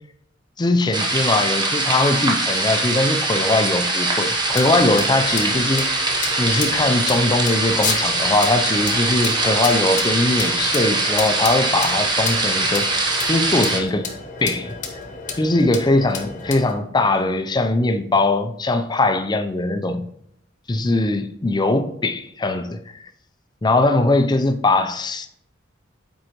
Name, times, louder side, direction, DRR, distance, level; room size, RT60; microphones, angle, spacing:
voice 1, 0.6-5.9 6.4-12.9 13.3-14.1 14.4-14.7 15.4-20.1 20.7-22.8 23.6-25.3, left 2 dB, 20° left, 0.4 m, -20 dB
sound 1, 0.9-13.8, right 2 dB, 25° right, 0.9 m, -22 dB
sound 2, 4.4-16.7, left 5 dB, 40° left, 1.0 m, -32 dB
7.7 x 4.6 x 3.0 m
head